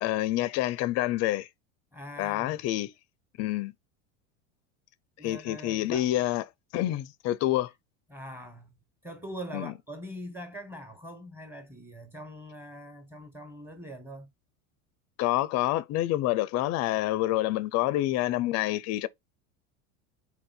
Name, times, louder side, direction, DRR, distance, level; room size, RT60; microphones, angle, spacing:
voice 1, 0.0-1.5 2.2-2.9 3.4-3.7 5.2-6.4 6.7-7.7 9.5-9.7 15.2-19.1, left 15 dB, 40° left, 0.5 m, -27 dB
voice 2, 1.9-2.6 5.2-6.1 8.1-8.7 9.0-14.3, equal, 5° right, 1.4 m, -42 dB
4.2 x 2.5 x 4.2 m
supercardioid pair, 110°, 40 cm